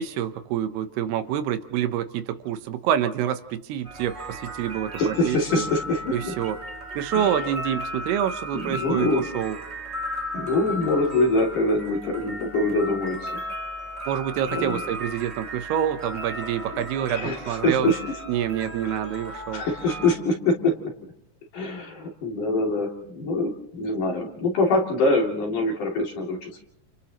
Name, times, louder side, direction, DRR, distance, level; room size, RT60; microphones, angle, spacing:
voice 1, 0.0-5.6 6.1-6.6 6.9-9.6 14.1-17.9 18.3-19.6, right 10 dB, 80° right, 10 dB, 2.9 m, -27 dB
sound 1, 3.8-20.1, equal, 20° right, 2.0 m, -35 dB
voice 2, 5.0-6.3 7.1-7.5 8.5-9.3 10.3-13.4 13.9-14.0 14.5-14.8 16.7-18.0 18.8-19.1 19.5-20.9 21.5-26.6, left 2 dB, 55° left, 0 dB, 4.0 m, -25 dB
30.0 x 29.0 x 3.0 m, 0.74 s
omnidirectional pair, 4.8 m